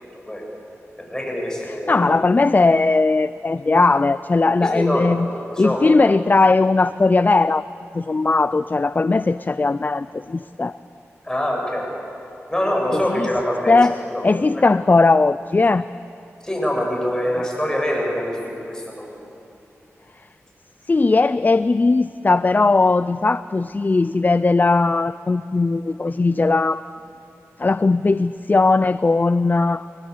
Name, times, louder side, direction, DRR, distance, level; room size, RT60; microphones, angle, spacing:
voice 1, 1.0-2.0 4.6-5.9 11.2-11.9 12.5-13.8 14.1-14.2 14.5-14.7 16.4-19.3, equal, 15° left, -1 dB, 7.0 m, -24 dB
voice 2, 1.9-5.3 5.6-7.7 7.9-10.8 12.9-13.3 13.7-14.0 14.2-15.9 20.9-26.8 27.6-29.9, left 3 dB, 35° left, 15 dB, 0.4 m, -18 dB
23.0 x 19.5 x 8.1 m, 2.7 s
cardioid pair, 55°, 5 cm